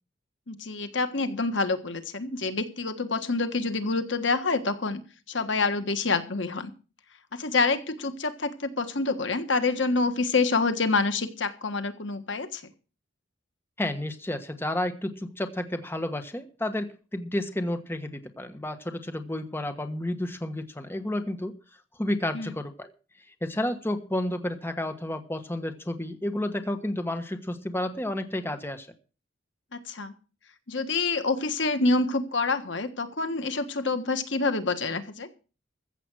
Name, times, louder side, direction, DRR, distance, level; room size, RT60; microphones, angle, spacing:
voice 1, 0.5-5.0 5.3-6.7 7.3-12.6 22.3-22.5 29.9-30.1 30.7-35.3, left 3 dB, 70° left, 9 dB, 1.5 m, -27 dB
voice 2, 13.8-21.5 22.0-22.9 23.4-28.9, left 1 dB, 10° left, 7 dB, 1.3 m, -31 dB
15.0 x 7.9 x 6.2 m, 0.35 s
head